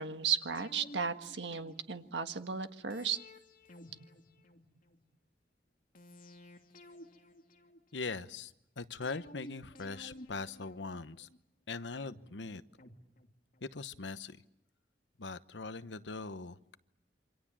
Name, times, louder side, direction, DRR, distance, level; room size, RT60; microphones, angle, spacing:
voice 1, 0.0-3.2, right 6 dB, 80° right, 8 dB, 1.6 m, -35 dB
sound 1, 0.5-2.1 2.9-5.0 5.9-8.2 9.0-11.4 12.0-13.7 14.0-14.1, left 1 dB, 50° left, 2.8 m, -54 dB
voice 2, 7.9-11.3 11.7-12.6 13.6-14.4 15.2-16.8, left 4 dB, 85° left, 13 dB, 1.0 m, -41 dB
28.0 x 25.5 x 7.5 m, 0.80 s
head